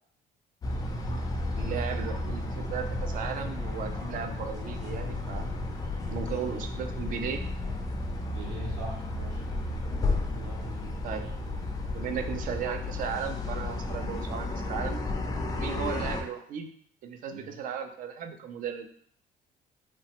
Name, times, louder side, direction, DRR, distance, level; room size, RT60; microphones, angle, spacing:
sound 1, 0.6-16.2, left 2 dB, 20° left, 0.4 m, -33 dB
voice 1, 1.5-5.5 6.1-7.4 11.0-11.3 11.9-15.0 15.6-16.7 17.0-18.9, right 7 dB, 55° right, 7 dB, 0.4 m, -36 dB
voice 2, 8.3-9.4 10.3-11.2 15.5-15.8 17.3-17.5, equal, 85° right, -2 dB, 0.8 m, -43 dB
3.1 x 2.0 x 2.8 m, 0.63 s
cardioid pair, 110°, 17 cm